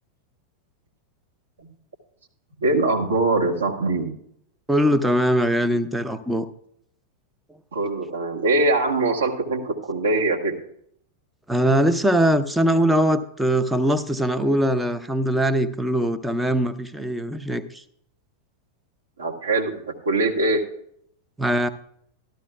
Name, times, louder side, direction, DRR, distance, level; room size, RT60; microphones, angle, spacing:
voice 1, 2.6-4.1 7.7-10.6 19.2-20.6, right 2 dB, 70° right, 0 dB, 1.5 m, -22 dB
voice 2, 4.7-6.5 11.5-17.8 21.4-21.7, equal, 5° right, 9 dB, 0.6 m, -21 dB
13.0 x 12.5 x 2.3 m, 0.68 s
figure-of-eight pair, 90°, 0 cm